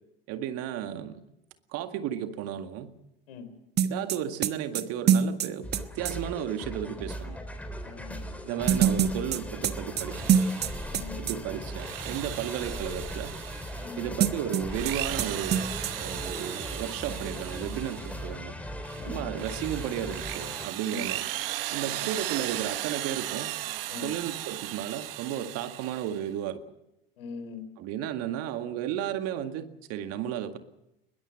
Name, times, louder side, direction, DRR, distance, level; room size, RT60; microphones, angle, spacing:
voice 1, 0.3-1.2 1.7-2.9 3.8-7.4 8.5-10.4 11.2-13.3 14.0-15.6 16.0-18.5 19.0-21.3 21.7-23.5 24.0-26.6 27.8-30.6, right 10 dB, 55° right, 8 dB, 2.0 m, -34 dB
sound 1, 3.8-6.1 8.7-11.0 11.3-11.4 14.2-14.9 15.2-15.3 15.5-15.9, right 8 dB, 35° right, 1.3 m, -24 dB
sound 2, 5.6-20.7, equal, 5° left, 3.6 m, -38 dB
voice 2, 7.8-8.5 10.9-11.3 13.8-14.1 19.0-19.3 20.9-21.1 21.8-22.1 23.9-24.1 27.2-27.7, left 5 dB, 75° left, 10 dB, 3.8 m, -42 dB
Drill, 10.0-11.1 11.6-14.0 14.6-18.3 18.8-26.3, right 15 dB, 70° right, 1.2 m, -37 dB
21.5 x 21.0 x 7.7 m, 0.84 s
hypercardioid pair, 75°, 29 cm